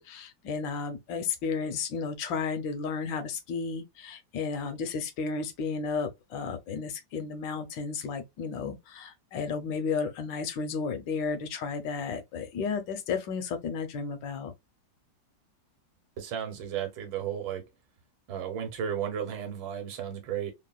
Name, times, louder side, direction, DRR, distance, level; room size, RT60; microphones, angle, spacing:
voice 1, 0.0-14.5, left 5 dB, 75° left, 1.3 m, -33 dB
voice 2, 16.2-17.6 18.3-20.5, right 9 dB, 80° right, 1.5 m, -34 dB
3.6 x 2.1 x 2.3 m
omnidirectional pair, 2.1 m